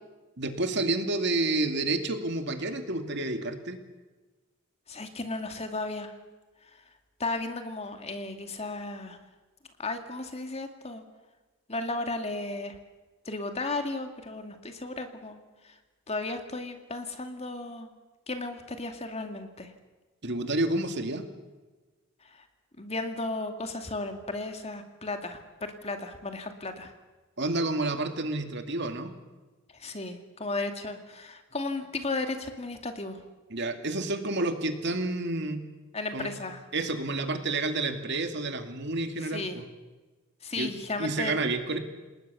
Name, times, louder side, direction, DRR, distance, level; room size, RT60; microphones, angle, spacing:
voice 1, 0.4-3.8 20.2-21.3 27.4-29.1 33.5-35.6 36.1-36.3 36.7-39.6 40.6-40.7 41.0-41.8, right 2 dB, 60° right, 6 dB, 2.4 m, -29 dB
voice 2, 4.9-6.1 6.7-6.8 7.2-9.2 9.8-11.0 11.7-12.8 13.3-15.4 15.6-15.8 16.1-17.9 18.3-19.7 22.2-22.4 22.8-26.9 29.7-33.2 35.9-36.6 39.2-39.6 40.4-41.3, left 2 dB, 30° left, 6 dB, 2.4 m, -35 dB
28.5 x 20.0 x 6.9 m, 1.2 s
head